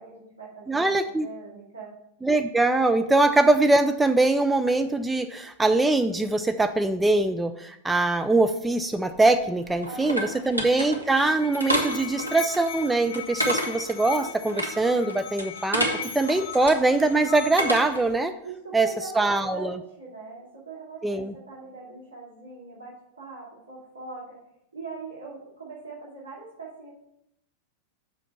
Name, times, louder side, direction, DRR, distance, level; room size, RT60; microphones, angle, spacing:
voice 1, 0.0-1.9 9.8-10.4 18.4-24.4 24.7-26.9, right 4 dB, 70° right, -10 dB, 2.6 m, -41 dB
voice 2, 0.7-1.3 2.2-15.9 16.1-18.3 18.7-18.9 19.2-19.8 21.0-21.3, right 2 dB, 10° right, 8 dB, 0.3 m, -22 dB
sound 1, 9.1-18.1, right 1 dB, 85° right, 1.0 m, -31 dB
Musical instrument, 10.9-17.9, left 10 dB, 45° left, 0.6 m, -39 dB
6.4 x 4.9 x 5.4 m, 0.80 s
figure-of-eight pair, 90°, 0 cm